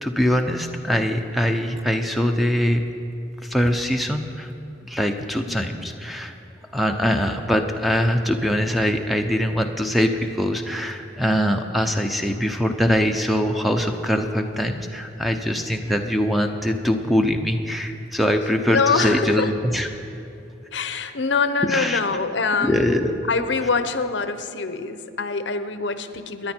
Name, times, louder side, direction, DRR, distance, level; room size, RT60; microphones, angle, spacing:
voice 1, 0.0-2.8 3.4-4.5 4.8-6.3 6.7-19.9 21.6-22.0 22.6-23.2, equal, ahead, 4 dB, 0.7 m, -22 dB
voice 2, 18.6-19.5 20.7-22.9 23.3-26.5, left 4 dB, 65° left, 10 dB, 0.8 m, -24 dB
26.5 x 10.0 x 4.5 m, 2.7 s
head